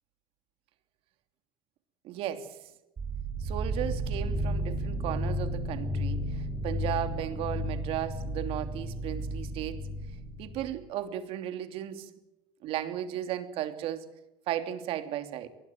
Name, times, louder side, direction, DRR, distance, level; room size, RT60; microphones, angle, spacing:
voice 1, 2.0-2.7 3.4-9.9 10.4-12.1 12.6-14.1 14.5-15.5, right 11 dB, 60° right, 3.0 m, -35 dB
sound 1, 3.0-10.8, equal, 25° right, 7.4 m, -33 dB
23.5 x 20.5 x 7.5 m
supercardioid pair, 120°, 11 cm